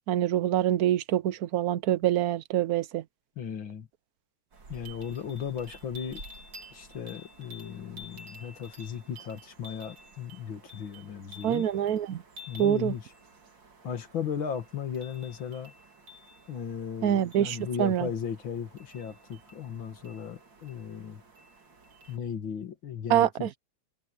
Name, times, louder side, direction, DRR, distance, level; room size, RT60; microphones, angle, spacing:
voice 1, 0.1-3.0 11.4-12.2 12.6-12.9 17.0-18.1 23.1-23.5, right 11 dB, 80° right, 0.8 m, -25 dB
voice 2, 3.4-3.9 4.7-6.2 6.7-11.6 12.5-13.1 13.8-15.7 16.5-21.2 22.1-23.6, left 8 dB, 65° left, 2.6 m, -36 dB
sound 1, 4.5-22.2, equal, 55° right, 3.4 m, -51 dB
omnidirectional pair, 2.4 m